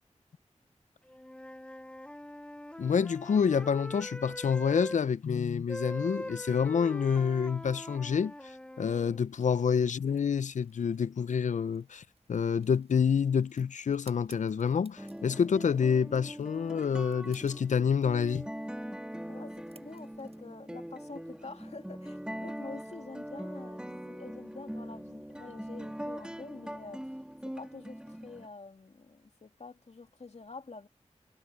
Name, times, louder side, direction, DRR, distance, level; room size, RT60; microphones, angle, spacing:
Wind instrument woodwind instrument, 1.1-5.0 5.7-9.2, left 1 dB, 10° left, 0.8 m, -42 dB
voice 1, 2.8-12.0 12.3-18.5, left 6 dB, 85° left, 0.5 m, -28 dB
sound 1, 9.4-20.4, right 3 dB, 55° right, 7.1 m, -63 dB
sound 2, 15.0-28.5, equal, 5° right, 2.9 m, -42 dB
voice 2, 19.3-27.1 27.4-30.9, left 3 dB, 60° left, 2.6 m, -47 dB
cardioid pair, 40°, 12 cm